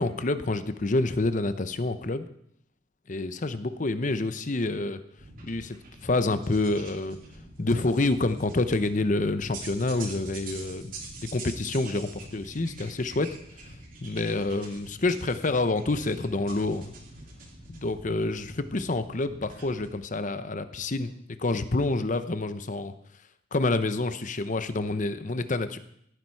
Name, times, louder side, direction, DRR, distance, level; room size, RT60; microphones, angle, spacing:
voice 1, 0.0-2.3 3.1-5.0 5.4-5.8 6.0-7.2 7.6-11.0 11.3-13.4 14.0-16.9 17.7-21.1 21.4-22.9 23.5-25.8, left 2 dB, 40° left, 12 dB, 0.8 m, -28 dB
sound 1, 5.2-19.9, right 2 dB, 45° right, 3.2 m, -45 dB
17.0 x 9.8 x 4.7 m, 0.73 s
head